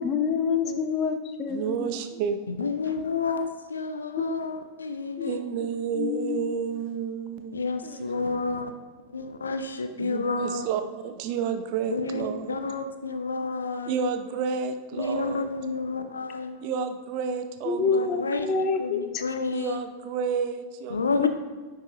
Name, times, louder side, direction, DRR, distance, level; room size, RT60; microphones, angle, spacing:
voice 1, 0.0-1.9 4.2-4.4 5.2-5.3 6.0-6.5 17.6-19.0 21.2-21.3, left 5 dB, 30° left, 7 dB, 0.6 m, -27 dB
voice 2, 1.5-2.4 5.2-8.0 10.0-12.6 13.9-15.5 16.6-18.3 19.5-21.3, right 6 dB, 45° right, 8 dB, 0.5 m, -31 dB
voice 3, 2.5-5.4 7.5-8.7 9.1-10.7 11.9-14.0 15.0-16.6 17.8-19.8 20.9-21.3, left 3 dB, 75° left, 8 dB, 0.5 m, -30 dB
9.7 x 4.8 x 2.5 m, 1.4 s
figure-of-eight pair, 90°, 0 cm